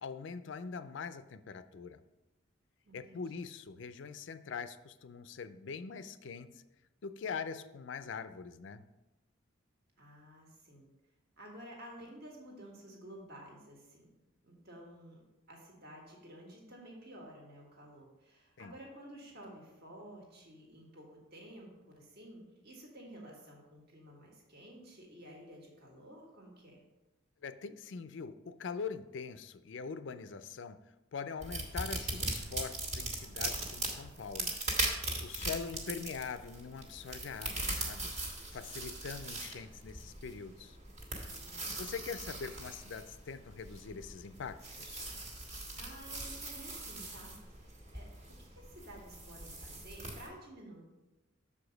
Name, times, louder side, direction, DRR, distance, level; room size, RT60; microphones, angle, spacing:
voice 1, 0.0-2.0 2.9-6.6 7.0-8.8 18.6-18.7 27.4-30.8 31.1-34.6 34.9-40.8 41.8-45.0, left 5 dB, 65° left, 12 dB, 0.4 m, -43 dB
voice 2, 2.8-3.5 10.0-10.9 11.4-14.1 14.4-26.8 41.3-41.9 45.7-48.1 48.4-50.8, right 1 dB, 50° right, -1 dB, 1.7 m, -52 dB
sound 1, 31.4-50.3, right 2 dB, 35° right, 1.5 m, -40 dB
6.9 x 4.9 x 5.1 m, 1.0 s
head